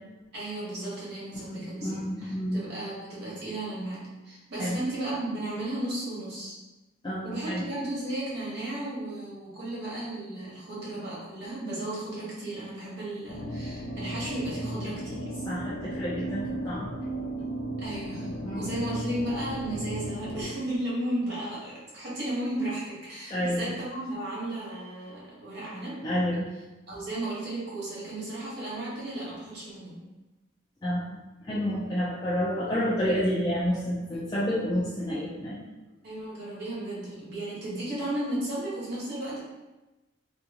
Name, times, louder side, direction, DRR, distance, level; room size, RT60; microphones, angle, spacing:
voice 1, 0.3-6.6 7.2-15.3 17.8-26.0 26.9-30.0 36.0-39.4, right 1 dB, 50° right, -7 dB, 1.1 m, -34 dB
voice 2, 1.6-2.6 4.6-4.8 7.0-7.6 15.5-16.9 18.4-18.8 23.3-23.7 26.0-26.5 30.8-31.2 31.5-35.6, equal, 20° left, -8 dB, 0.4 m, -29 dB
sound 1, 13.3-20.4, right 1 dB, 70° left, 0.8 m, -35 dB
3.4 x 2.5 x 2.8 m, 1.1 s
head